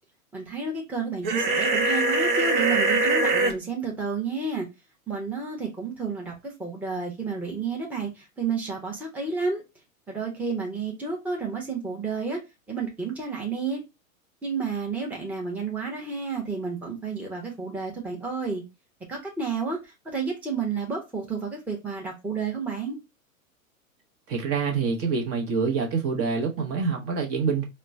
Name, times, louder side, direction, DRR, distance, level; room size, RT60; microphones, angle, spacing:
voice 1, 0.3-4.7 5.1-9.6 10.1-12.4 12.7-13.8 14.4-18.6 19.1-23.0, right 4 dB, 5° right, 0.8 m, -31 dB
sound 1, 1.2-3.5, right 2 dB, 55° right, 1.2 m, -22 dB
voice 2, 24.3-27.6, right 5 dB, 35° right, 0.9 m, -26 dB
4.2 x 2.1 x 2.4 m
hypercardioid pair, 100°, 42 cm